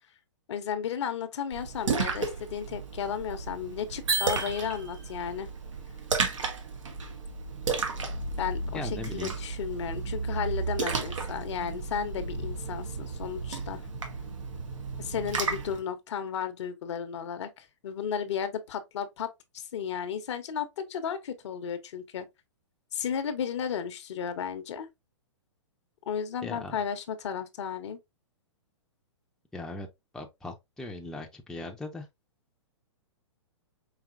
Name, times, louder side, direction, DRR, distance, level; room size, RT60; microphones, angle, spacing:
voice 1, 0.5-5.5 8.4-13.8 15.0-19.3 19.5-22.3 22.9-24.9 26.1-28.0, left 8 dB, 65° left, 0.8 m, -34 dB
Splash splatter, 1.5-15.8, right 4 dB, 85° right, 1.3 m, -33 dB
sound 1, 4.1-5.2, right 4 dB, 65° right, 1.7 m, -31 dB
voice 2, 8.7-9.4 26.4-26.8 29.5-29.9 30.1-32.1, left 2 dB, 5° left, 0.6 m, -39 dB
4.9 x 2.8 x 2.5 m
hypercardioid pair, 125°, 16 cm